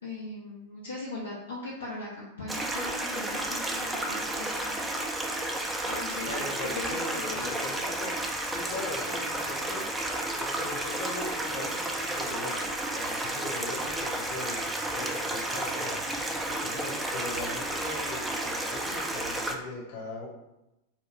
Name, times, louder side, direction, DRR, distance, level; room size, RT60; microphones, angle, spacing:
voice 1, 0.0-4.9 5.8-7.5, left 2 dB, 70° left, -6 dB, 0.5 m, -39 dB
Stream, 2.5-19.6, right 1 dB, 10° right, 0.3 m, -32 dB
voice 2, 6.3-8.2 8.4-9.8 10.4-20.3, left 2 dB, 50° left, -3 dB, 1.1 m, -40 dB
2.3 x 2.2 x 3.5 m, 0.92 s
figure-of-eight pair, 90°, 0 cm